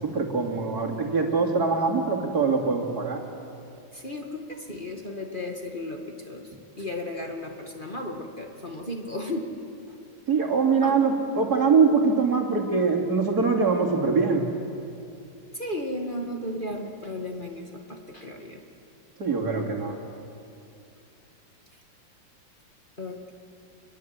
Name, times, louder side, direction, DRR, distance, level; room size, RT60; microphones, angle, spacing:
voice 1, 0.0-3.2 10.3-14.4 19.2-20.0, right 4 dB, 55° right, 0 dB, 3.1 m, -23 dB
voice 2, 3.9-9.6 9.9-10.0 10.8-11.0 15.5-18.6 23.0-23.3, left 1 dB, 25° left, 2 dB, 2.1 m, -35 dB
26.5 x 21.5 x 8.0 m, 2.7 s
omnidirectional pair, 2.1 m